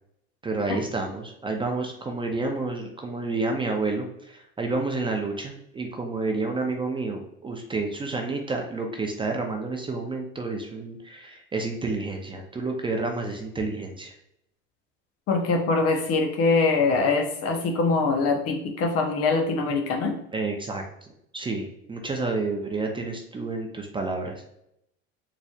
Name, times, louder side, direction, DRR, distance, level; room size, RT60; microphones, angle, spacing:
voice 1, 0.4-14.1 20.3-20.8 21.3-24.4, right 3 dB, 15° right, 2 dB, 0.5 m, -30 dB
voice 2, 15.3-20.1, left 3 dB, 45° left, 3 dB, 0.8 m, -23 dB
3.9 x 3.1 x 2.4 m, 0.76 s
hypercardioid pair, 90°, 33 cm